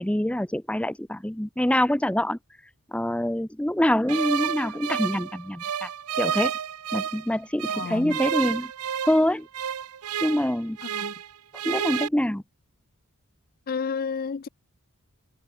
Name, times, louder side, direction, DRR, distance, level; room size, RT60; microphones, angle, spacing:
voice 1, 0.0-2.4 2.9-5.9 6.2-6.5 6.9-8.7 9.0-9.5 10.2-10.8 11.6-12.4, left 1 dB, 5° left, 0.6 m, -25 dB
sound 1, 4.1-7.3 7.6-11.3 11.5-12.1, right 8 dB, 85° right, 0.6 m, -30 dB
voice 2, 7.7-8.2 10.8-11.1 13.7-14.5, left 5 dB, 40° left, 0.4 m, -31 dB
head